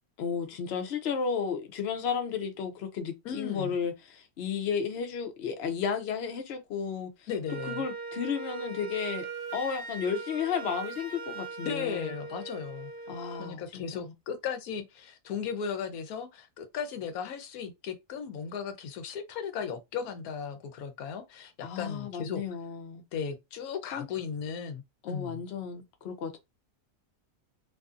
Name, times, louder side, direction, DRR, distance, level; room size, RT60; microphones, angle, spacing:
voice 1, 0.2-7.3 7.7-9.3 9.5-12.1 13.1-14.1 21.6-23.0 23.9-24.1 25.0-26.4, left 6 dB, 60° left, 0.7 m, -33 dB
voice 2, 3.2-3.7 7.3-7.8 11.6-12.9 13.4-22.4 23.1-25.4, left 7 dB, 80° left, 1.1 m, -36 dB
Wind instrument woodwind instrument, 7.5-13.6, right 5 dB, 55° right, 0.8 m, -40 dB
2.6 x 2.5 x 2.4 m
omnidirectional pair, 1.5 m